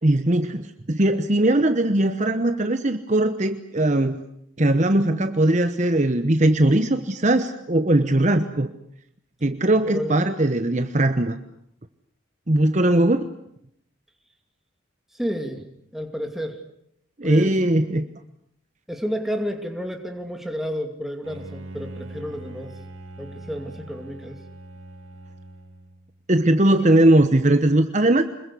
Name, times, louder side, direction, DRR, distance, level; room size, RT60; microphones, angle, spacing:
voice 1, 0.0-4.2 4.6-8.7 9.4-11.4 12.5-13.3 17.2-18.1 26.3-28.2, right 1 dB, 35° right, 9 dB, 1.0 m, -20 dB
voice 2, 9.9-10.2 15.1-15.6 15.9-16.6 17.2-17.5 18.9-22.7 23.2-24.4, equal, ahead, 4 dB, 2.5 m, -30 dB
Bowed string instrument, 21.2-26.2, right 2 dB, 75° right, 2.6 m, -41 dB
26.0 x 22.0 x 8.4 m, 0.74 s
head